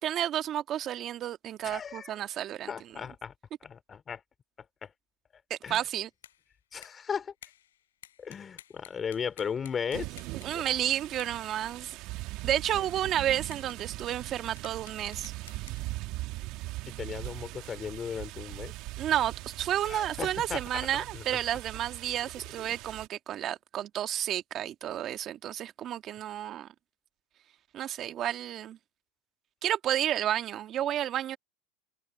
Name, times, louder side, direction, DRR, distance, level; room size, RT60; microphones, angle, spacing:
voice 1, 0.0-2.7 5.5-6.1 10.4-12.0 12.4-15.3 19.0-26.7 27.7-28.8 29.6-31.4, right 11 dB, 45° right, 1.7 m, -31 dB
voice 2, 1.6-2.2 2.7-3.3 3.6-4.2 4.8-4.9 5.6-5.8 6.7-7.3 8.2-10.1 10.5-10.7 16.4-16.5 16.9-18.7 19.8-20.9 21.1-21.2 22.7-22.8, left 7 dB, 30° left, 2.7 m, -36 dB
sound 1, 5.8-6.5 6.8-7.1 7.4-11.5 13.5-15.8, left 11 dB, 85° left, 7.1 m, -54 dB
sound 2, 9.9-23.1, right 20 dB, 60° right, 1.7 m, -40 dB
hypercardioid pair, 95°, 0 cm